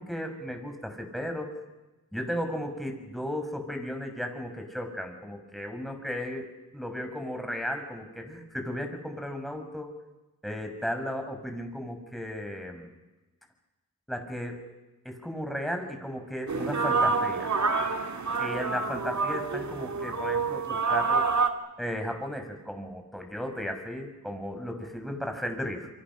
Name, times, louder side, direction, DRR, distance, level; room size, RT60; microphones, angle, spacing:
voice 1, 0.0-1.5 2.1-6.4 6.7-9.9 10.4-12.9 14.1-14.6 15.0-17.5 18.4-21.3 21.8-25.9, equal, ahead, 5 dB, 6.2 m, -35 dB
sound 1, 16.5-21.5, right 4 dB, 50° right, 2.3 m, -27 dB
27.5 x 24.0 x 6.4 m, 1.1 s
cardioid pair, 45°, 37 cm